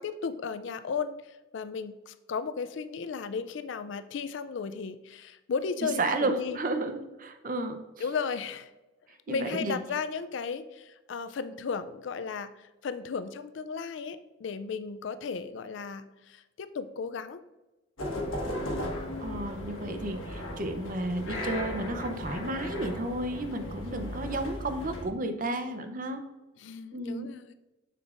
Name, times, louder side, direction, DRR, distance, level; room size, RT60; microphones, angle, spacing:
voice 1, 0.0-6.6 8.0-8.7 9.3-17.4 26.6-27.5, left 5 dB, 70° left, 12 dB, 0.4 m, -35 dB
voice 2, 5.8-7.8 9.3-9.8 19.2-26.2 26.9-27.3, right 2 dB, 40° right, 7 dB, 0.6 m, -32 dB
sound 1, 18.0-25.1, left 1 dB, 90° left, 1.3 m, -36 dB
7.0 x 6.9 x 2.5 m, 1.1 s
head